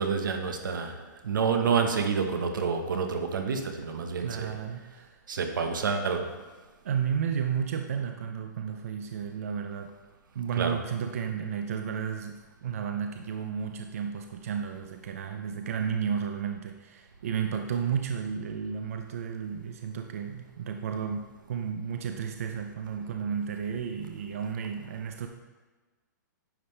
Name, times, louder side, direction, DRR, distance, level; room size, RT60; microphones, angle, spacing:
voice 1, 0.0-4.6 5.3-6.4 10.6-10.8, right 5 dB, 85° right, 5 dB, 1.1 m, -28 dB
voice 2, 4.2-5.2 6.8-9.9 10.3-12.4 12.6-25.3, right 7 dB, 45° right, 5 dB, 0.5 m, -32 dB
10.0 x 5.5 x 3.3 m, 1.3 s
hypercardioid pair, 175°, 10 cm